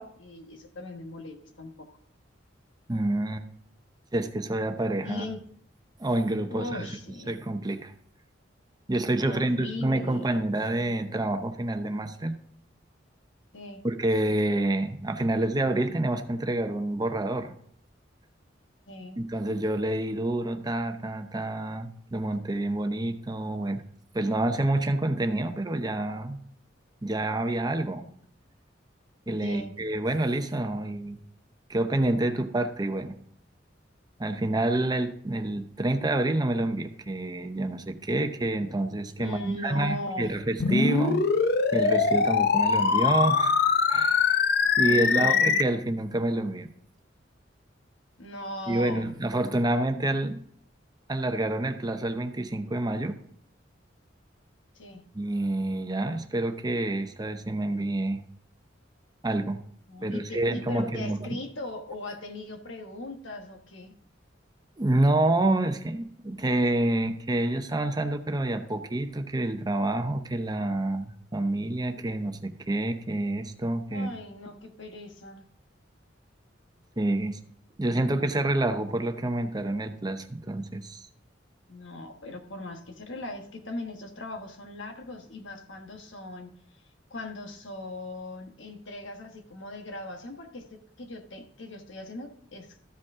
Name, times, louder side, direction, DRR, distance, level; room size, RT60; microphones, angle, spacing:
voice 1, 0.0-1.9 5.0-5.4 6.5-7.4 9.3-10.3 13.5-13.8 18.9-19.2 29.4-29.7 39.2-40.3 44.8-45.5 48.2-49.1 54.7-55.0 59.9-63.9 73.9-75.4 81.7-86.5 87.1-92.9, left 2 dB, 75° left, 4 dB, 1.4 m, -39 dB
voice 2, 2.9-3.5 4.1-5.2 6.0-6.9 7.3-7.9 8.9-12.4 13.8-17.5 19.2-23.8 24.1-26.4 27.0-28.1 29.3-31.2 31.7-33.2 34.2-41.2 41.7-43.5 43.9-44.4 44.8-46.7 48.7-50.4 51.1-53.2 55.1-58.2 59.2-59.6 60.0-61.3 64.8-74.1 77.0-77.4 77.8-81.1, right 1 dB, 20° right, 7 dB, 0.7 m, -28 dB
sound 1, 40.6-45.6, left 5 dB, 60° left, 0.6 m, -23 dB
14.0 x 5.2 x 3.6 m, 0.64 s
head